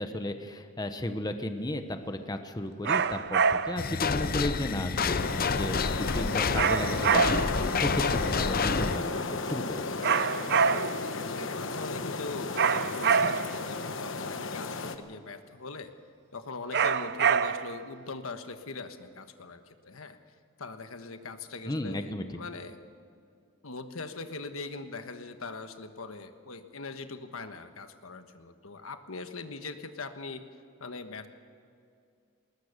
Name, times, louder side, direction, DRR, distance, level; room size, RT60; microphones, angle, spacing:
voice 1, 0.0-10.0 21.7-22.2, left 1 dB, 20° left, 7 dB, 1.0 m, -34 dB
sound 1, 2.8-3.9 6.5-7.6 10.0-11.1 12.6-13.6 16.7-17.8, right 6 dB, 55° right, 0.6 m, -26 dB
sound 2, 3.8-9.0, left 5 dB, 45° left, 0.7 m, -29 dB
sound 3, 5.2-15.0, left 3 dB, 65° left, 1.1 m, -34 dB
voice 2, 9.9-10.3 10.7-10.9 11.2-15.9 16.3-20.2 20.6-22.8 23.6-30.4 30.8-31.3, left 3 dB, 80° left, 8 dB, 1.3 m, -41 dB
20.5 x 20.0 x 6.7 m, 2.4 s
head